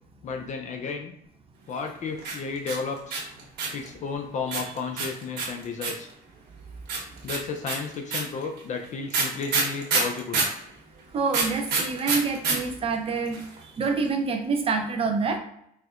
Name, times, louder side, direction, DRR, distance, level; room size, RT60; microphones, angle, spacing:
voice 1, 0.2-1.1 1.7-3.3 3.7-6.1 7.2-10.5, left 5 dB, 45° left, 4 dB, 0.4 m, -33 dB
sound 1, 2.2-3.9 4.5-6.1 6.9-10.6 11.3-12.5 12.8-12.9 13.1-13.6, right 4 dB, 75° right, 1.1 m, -26 dB
voice 2, 11.1-13.4 13.8-15.4, right 4 dB, 35° right, 5 dB, 0.5 m, -26 dB
4.2 x 2.1 x 2.4 m, 0.72 s
cardioid pair, 110°, 17 cm